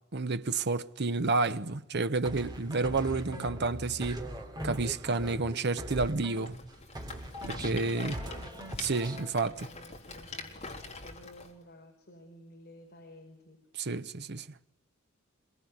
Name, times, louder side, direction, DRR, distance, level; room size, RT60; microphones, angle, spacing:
voice 1, 0.1-4.2 4.6-6.6 7.6-8.1 8.8-9.6 13.8-14.5, right 3 dB, 55° right, 0.9 m, -30 dB
sound 1, 2.2-6.7 6.9-9.3, equal, 20° right, 3.2 m, -40 dB
voice 2, 3.3-3.9 7.5-13.6, left 1 dB, 50° left, 4.8 m, -53 dB
Rattle, 6.4-11.5, left 3 dB, 30° left, 4.0 m, -45 dB
25.5 x 23.0 x 9.5 m
head